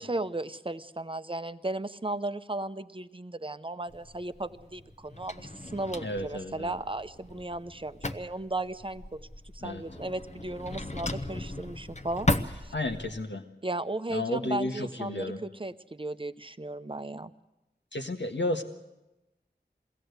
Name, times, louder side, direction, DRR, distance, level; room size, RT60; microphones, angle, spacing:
voice 1, 0.0-9.3 9.5-12.7 13.6-17.3, right 2 dB, 30° right, 11 dB, 0.8 m, -35 dB
Drawer open or close, 3.9-13.2, left 2 dB, 40° left, 0.9 m, -36 dB
voice 2, 6.0-6.7 9.6-9.8 12.7-13.5 14.1-15.4 17.9-18.6, left 1 dB, 80° left, 5 dB, 1.5 m, -32 dB
22.0 x 16.5 x 8.1 m, 0.99 s
wide cardioid pair, 45°, 18 cm